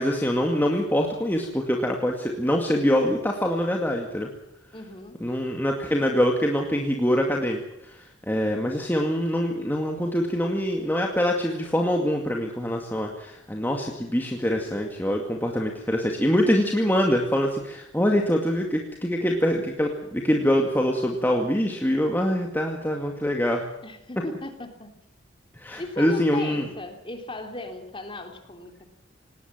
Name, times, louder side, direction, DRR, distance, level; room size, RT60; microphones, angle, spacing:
voice 1, 0.0-4.3 5.2-23.6 25.5-26.7, equal, 10° left, 1 dB, 2.2 m, -24 dB
voice 2, 4.7-5.2 23.8-24.9 25.8-28.9, left 2 dB, 25° left, 5 dB, 3.3 m, -36 dB
19.0 x 19.0 x 7.4 m, 0.85 s
head